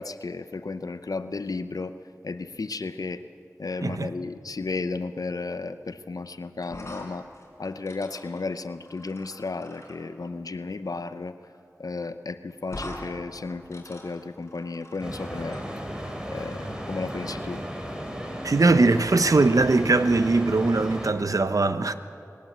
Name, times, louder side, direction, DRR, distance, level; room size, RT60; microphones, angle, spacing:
voice 1, 0.0-1.9 2.2-3.2 3.6-7.3 7.6-11.4 11.8-15.6 16.3-17.6, left 3 dB, 85° left, 0.7 m, -33 dB
sound 1, 6.6-10.0 11.4-11.6 11.8-11.9 12.7-13.0 13.4-15.6, left 1 dB, 50° left, 4.6 m, -43 dB
sound 2, 15.0-21.1, equal, 15° right, 3.3 m, -35 dB
voice 2, 18.4-21.9, right 3 dB, 70° right, 0.8 m, -21 dB
20.5 x 18.5 x 7.4 m
wide cardioid pair, 50°, 6 cm